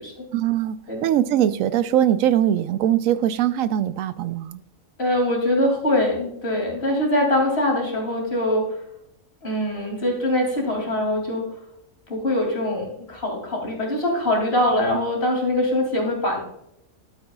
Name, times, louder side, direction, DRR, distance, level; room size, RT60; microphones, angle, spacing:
voice 1, 0.3-4.6, right 11 dB, 85° right, 13 dB, 1.0 m, -21 dB
voice 2, 5.0-8.8 9.4-11.5 12.1-16.4, left 1 dB, 50° left, 0 dB, 3.1 m, -23 dB
12.0 x 8.6 x 2.4 m, 0.76 s
omnidirectional pair, 1.4 m